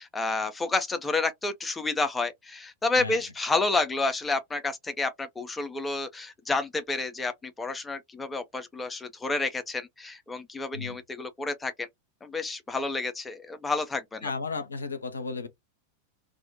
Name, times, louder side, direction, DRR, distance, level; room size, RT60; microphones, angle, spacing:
voice 1, 0.0-11.9 12.2-14.3, left 3 dB, 10° left, 0.4 m, -30 dB
voice 2, 14.2-15.5, left 4 dB, 75° left, 0.5 m, -34 dB
2.1 x 2.1 x 2.7 m
figure-of-eight pair, 90°, 0 cm